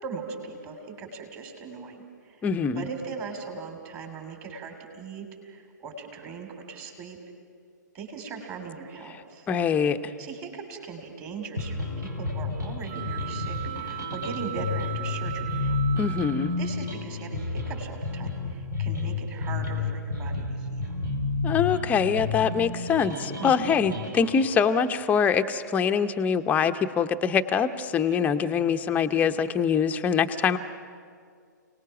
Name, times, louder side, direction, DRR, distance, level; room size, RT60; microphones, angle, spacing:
voice 1, 0.0-2.5 2.8-7.2 7.9-9.5 10.2-15.8 16.4-21.0 23.4-23.7 28.1-28.3, right 5 dB, 25° right, 4 dB, 3.3 m, -39 dB
voice 2, 2.4-2.9 9.5-10.1 16.0-16.5 21.4-30.6, left 6 dB, 15° left, 7 dB, 0.8 m, -24 dB
sound 1, 11.6-24.5, left 3 dB, 85° right, 3.9 m, -31 dB
sound 2, 12.9-16.9, right 17 dB, 45° right, 0.8 m, -38 dB
29.0 x 19.0 x 6.0 m, 2.2 s
figure-of-eight pair, 120°, 10 cm